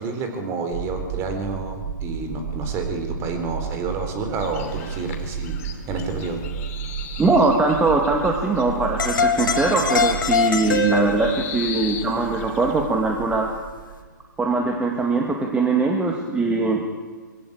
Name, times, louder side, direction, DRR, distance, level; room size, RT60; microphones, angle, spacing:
voice 1, 0.0-5.6 5.9-6.4, right 3 dB, 25° right, 5 dB, 3.9 m, -29 dB
sound 1, 0.7-14.9, right 7 dB, 50° right, 4.7 m, -34 dB
sound 2, 4.3-12.9, left 8 dB, 40° left, 3.0 m, -39 dB
voice 2, 7.2-13.5 14.4-16.8, right 3 dB, 10° right, 1 dB, 2.0 m, -21 dB
sound 3, 9.0-11.5, left 5 dB, 75° left, 3.5 m, -22 dB
22.0 x 16.0 x 8.7 m, 1.5 s
hypercardioid pair, 135°, 11 cm